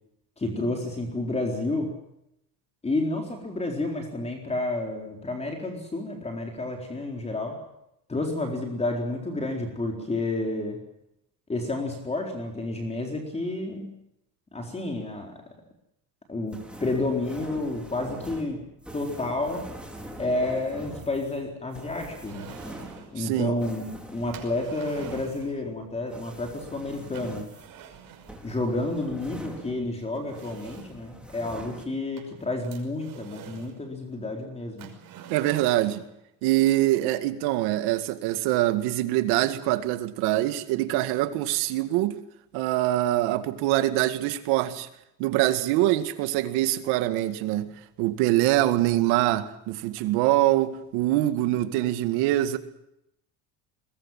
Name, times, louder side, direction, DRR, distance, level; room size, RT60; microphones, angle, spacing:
voice 1, 0.4-2.0 2.8-7.7 8.1-10.8 11.5-13.9 14.5-15.4 16.3-18.6 18.9-19.7 20.2-22.5 23.1-27.5 28.4-34.9, left 2 dB, 15° left, 4.2 m, -30 dB
sound 1, 16.5-30.0 30.3-31.9, equal, 5° right, 4.8 m, -43 dB
sound 2, 22.2-23.2 24.3-25.6 27.1-28.5 29.5-29.6 30.1-31.0 32.2-33.8 34.8-36.1, right 8 dB, 55° right, 6.0 m, -46 dB
voice 2, 23.2-23.5 35.3-36.0 36.4-42.2 42.5-44.9 45.2-47.7 48.0-52.6, right 15 dB, 85° right, 2.1 m, -24 dB
22.0 x 21.5 x 7.4 m
cardioid pair, 120°, 38 cm